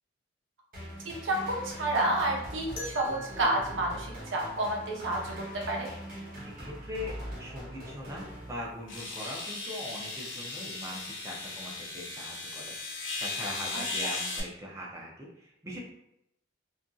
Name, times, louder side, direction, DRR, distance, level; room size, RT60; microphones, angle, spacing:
sound 1, 0.7-9.0, equal, 50° right, 0.9 m, -42 dB
voice 1, 1.2-5.9 14.0-14.1, right 1 dB, 75° right, -1 dB, 0.7 m, -30 dB
sound 2, 2.8-5.6, equal, 45° left, 0.6 m, -46 dB
voice 2, 6.4-15.8, left 1 dB, 15° right, -3 dB, 0.5 m, -41 dB
sound 3, 8.0-8.1 8.9-14.4, left 3 dB, 75° left, 0.9 m, -37 dB
2.8 x 2.4 x 2.6 m, 0.80 s
head